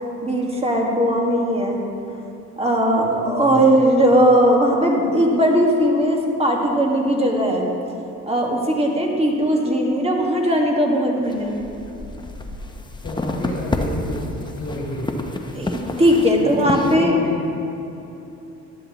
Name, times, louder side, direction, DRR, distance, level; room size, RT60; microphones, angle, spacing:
voice 1, 0.2-1.8 2.6-7.6 8.3-11.6 15.5-17.1, equal, 20° right, 0 dB, 1.8 m, -18 dB
voice 2, 3.4-3.7 13.0-15.3 16.4-17.5, left 1 dB, 50° left, -5 dB, 2.3 m, -30 dB
sound 1, 11.2-17.0, left 1 dB, 15° left, 0.9 m, -29 dB
12.0 x 11.5 x 3.1 m, 2.9 s
cardioid pair, 90°, 30 cm